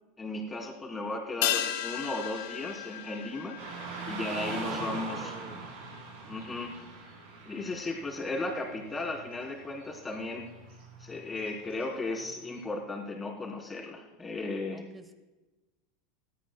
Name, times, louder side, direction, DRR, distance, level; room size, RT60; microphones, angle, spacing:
voice 1, 0.2-3.6 4.1-5.3 6.3-6.7 7.5-10.5 11.0-14.8, left 2 dB, 15° left, -1 dB, 3.9 m, -35 dB
sound 1, 1.4-6.1 6.4-6.5, left 12 dB, 70° left, 1.4 m, -35 dB
Car passing by / Traffic noise roadway noise, 3.6-12.6, right 4 dB, 70° right, 4.1 m, -42 dB
voice 2, 4.3-5.6 14.7-15.1, right 2 dB, 15° right, 9 dB, 1.5 m, -47 dB
18.5 x 13.5 x 2.3 m, 1.1 s
hypercardioid pair, 90°, 0 cm